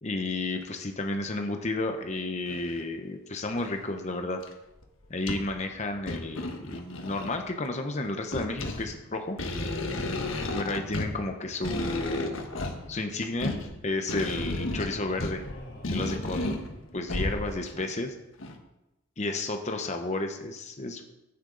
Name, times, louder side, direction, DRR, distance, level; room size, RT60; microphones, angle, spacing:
voice 1, 0.0-4.4 5.1-9.4 10.5-12.3 12.9-13.5 13.8-15.4 15.9-16.6 16.9-18.1 19.2-21.0, left 2 dB, 35° left, 5 dB, 0.9 m, -32 dB
sound 1, 0.6-0.7 1.3-1.4 2.5-2.8 3.5-4.0 4.4-4.5 4.8-5.6 6.0-7.5 8.0-17.9 18.4-18.6, left 2 dB, 85° left, 1.4 m, -33 dB
sound 2, 14.8-17.3, left 1 dB, 65° left, 3.3 m, -46 dB
14.0 x 9.6 x 3.9 m, 0.95 s
head